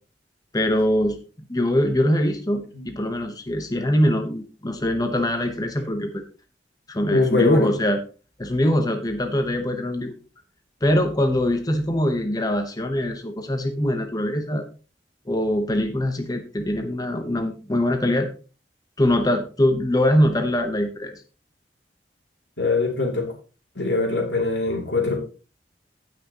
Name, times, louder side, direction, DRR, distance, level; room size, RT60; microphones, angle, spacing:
voice 1, 0.5-1.2 1.5-6.2 6.9-8.0 8.4-10.2 10.8-14.7 15.3-18.3 19.0-21.1, left 1 dB, 20° left, 5 dB, 1.0 m, -23 dB
voice 2, 7.1-7.7 22.6-23.3 23.7-25.2, left 3 dB, 90° left, 2 dB, 2.7 m, -22 dB
15.0 x 6.1 x 2.9 m, 0.35 s
head